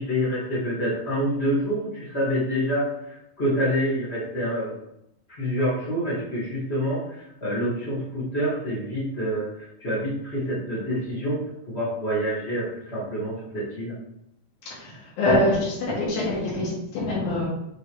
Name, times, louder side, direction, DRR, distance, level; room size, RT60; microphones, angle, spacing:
voice 1, 0.0-4.7 5.3-11.4 11.7-13.9, equal, 75° left, -8 dB, 0.6 m, -27 dB
voice 2, 14.6-17.5, left 1 dB, 90° left, -6 dB, 3.9 m, -24 dB
8.8 x 3.6 x 3.0 m, 0.81 s
omnidirectional pair, 4.1 m